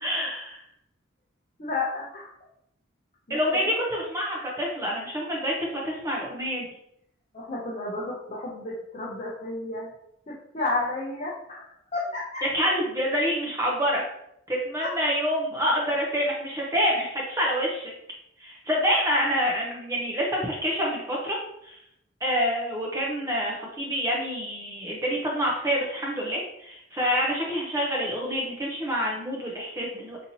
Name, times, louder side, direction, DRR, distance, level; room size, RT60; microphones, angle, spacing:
voice 1, 0.0-0.6 3.3-6.6 12.5-14.0 14.5-17.9 18.4-21.4 21.6-21.8 22.2-30.2, equal, 15° right, -3 dB, 0.5 m, -27 dB
voice 2, 1.6-2.3 3.3-3.7 7.3-9.9 10.3-12.4 14.8-14.9, left 2 dB, 35° left, -6 dB, 0.6 m, -32 dB
4.2 x 2.7 x 2.7 m, 0.75 s
head